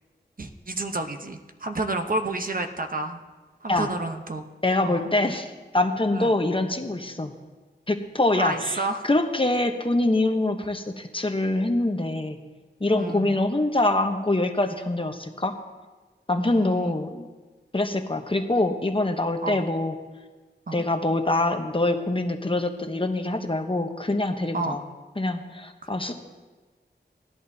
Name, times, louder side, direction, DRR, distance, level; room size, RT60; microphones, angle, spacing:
voice 1, 0.4-3.2 3.6-4.5 4.8-5.1 6.1-6.4 8.3-9.1 12.9-13.4 16.4-16.9 19.4-19.6 20.7-20.8 24.5-24.8 25.8-25.9, right 2 dB, 50° right, 6 dB, 0.8 m, -30 dB
voice 2, 4.6-7.4 7.9-8.8 9.1-12.4 12.8-15.5 16.3-17.3 17.7-19.9 20.7-24.8 25.2-26.1, left 2 dB, 30° left, 5 dB, 0.9 m, -24 dB
17.5 x 11.0 x 2.7 m, 1.3 s
wide cardioid pair, 65°, 19 cm